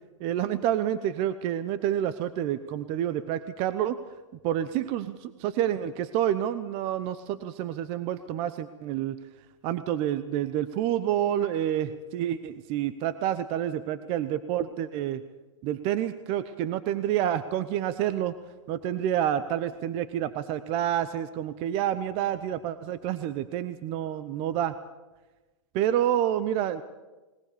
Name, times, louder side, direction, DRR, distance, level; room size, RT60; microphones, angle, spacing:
voice 1, 0.2-4.0 4.4-9.2 9.6-15.2 15.6-18.3 18.7-24.8 25.7-26.8, right 11 dB, 35° right, 13 dB, 0.9 m, -28 dB
20.5 x 20.0 x 6.9 m, 1.1 s
hypercardioid pair, 135°, 16 cm